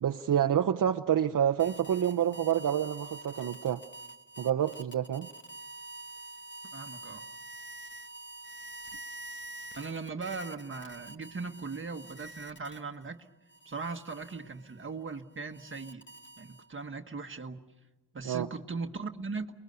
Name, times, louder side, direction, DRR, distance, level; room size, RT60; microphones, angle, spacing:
voice 1, 0.0-3.8 4.4-5.3 18.2-18.5, right 9 dB, 55° right, 0.7 m, -28 dB
sound 1, 1.6-13.1 13.5-16.9, right 2 dB, 30° left, 1.4 m, -47 dB
voice 2, 6.7-7.2 9.8-13.3 13.6-16.0 16.4-17.6 18.1-19.5, right 4 dB, 30° right, 1.4 m, -39 dB
29.0 x 21.5 x 6.8 m
wide cardioid pair, 140°, 39 cm